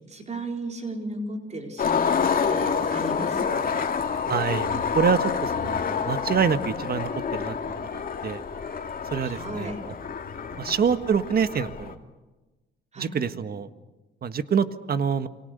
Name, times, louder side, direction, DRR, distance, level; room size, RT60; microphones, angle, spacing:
voice 1, 0.1-3.9 9.2-9.8 10.5-10.7 12.9-13.1, right 2 dB, 35° right, 3 dB, 4.4 m, -36 dB
Skateboard, 1.8-11.9, left 6 dB, 45° left, 2.5 m, -28 dB
voice 2, 4.3-8.4 9.0-9.9 10.6-12.0 13.0-13.7 14.2-15.3, right 6 dB, 50° right, 10 dB, 1.6 m, -26 dB
29.5 x 24.5 x 6.8 m, 1.1 s
cardioid pair, 90°, 20 cm